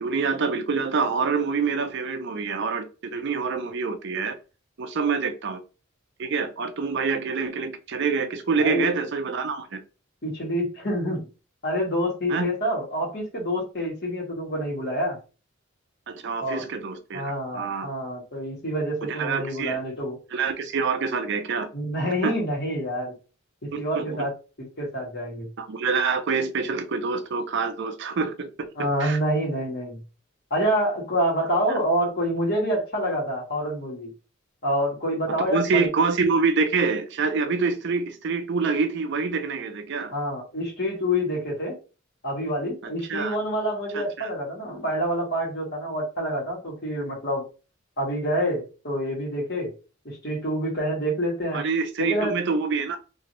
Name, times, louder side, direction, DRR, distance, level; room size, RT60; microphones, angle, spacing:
voice 1, 0.0-2.9 3.1-4.4 4.8-5.6 6.2-9.8 12.3-12.5 16.1-17.9 19.0-19.8 20.3-21.7 22.2-22.4 23.7-24.2 25.6-28.7 29.0-29.2 31.7-31.8 35.4-40.1 43.1-43.4 43.9-44.3 51.5-53.0, right 4 dB, 55° right, 0.5 m, -26 dB
voice 2, 10.2-11.3 11.6-15.2 16.4-16.6 17.1-20.2 21.7-23.1 23.6-24.3 24.6-25.5 28.7-30.0 30.5-34.1 34.6-35.9 40.1-41.7 42.2-47.4 48.0-49.7 50.0-51.6 52.0-52.4, equal, 50° left, 1.6 m, -27 dB
2.9 x 2.7 x 3.0 m
head